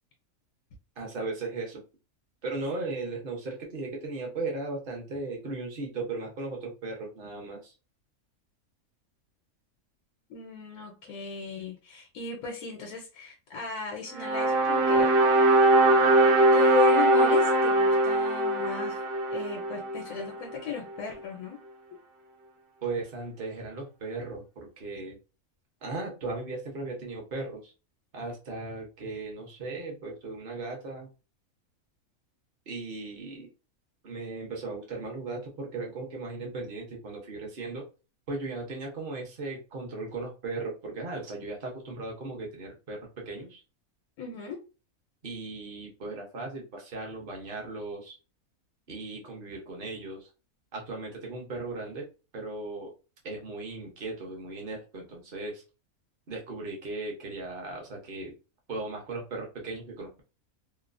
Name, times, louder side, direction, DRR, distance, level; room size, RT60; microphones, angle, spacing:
voice 1, 1.0-1.8 2.4-7.7 22.8-25.2 25.8-27.7 28.1-31.1 32.7-33.5 34.0-37.8 38.3-43.6 45.2-48.2 48.9-50.3 50.7-52.1 52.3-52.9 53.2-55.6 56.3-58.3 58.7-60.2, right 3 dB, 45° right, 0 dB, 0.9 m, -37 dB
voice 2, 10.3-15.1 16.5-19.0 19.3-21.6 44.2-44.6, left 7 dB, 85° left, 1 dB, 1.1 m, -35 dB
sound 1, 14.1-20.4, right 2 dB, 70° right, 1.0 m, -22 dB
3.0 x 2.0 x 2.4 m, 0.32 s
omnidirectional pair, 1.5 m